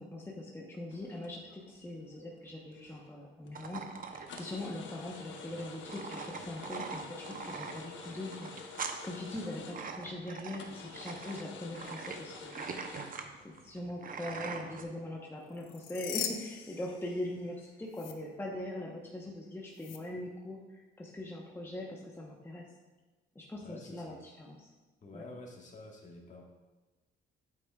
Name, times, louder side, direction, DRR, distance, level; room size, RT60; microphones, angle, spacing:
voice 1, 0.0-8.8 9.0-12.7 13.4-22.7 23.3-24.7 25.1-25.2, left 1 dB, 10° left, -2 dB, 1.0 m, -42 dB
sound 1, 0.9-1.7 2.1-3.1 3.4-3.7 4.3-10.1 10.6-13.9, left 4 dB, 70° left, 1.0 m, -49 dB
sound 2, 3.5-14.8, right 5 dB, 45° right, 0.8 m, -43 dB
sound 3, 15.5-17.6 17.9-18.1 19.8-20.0, left 9 dB, 90° left, 0.6 m, -40 dB
voice 2, 23.6-24.2 25.0-26.4, left 2 dB, 40° left, 0 dB, 1.6 m, -49 dB
8.4 x 8.2 x 2.4 m, 1.2 s
cardioid pair, 90°, 20 cm